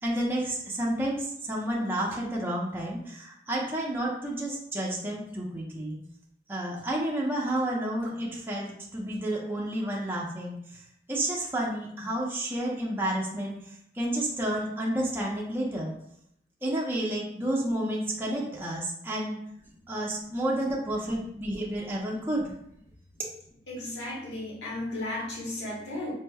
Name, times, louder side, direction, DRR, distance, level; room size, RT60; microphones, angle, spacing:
voice 1, 0.0-6.0 6.5-10.8 11.1-13.6 13.9-16.0 16.6-19.4 19.9-22.5 23.2-23.3, right 1 dB, 10° right, -4 dB, 0.6 m, -30 dB
voice 2, 23.7-26.1, left 1 dB, 80° left, -5 dB, 1.4 m, -35 dB
5.2 x 2.9 x 2.3 m, 0.72 s
head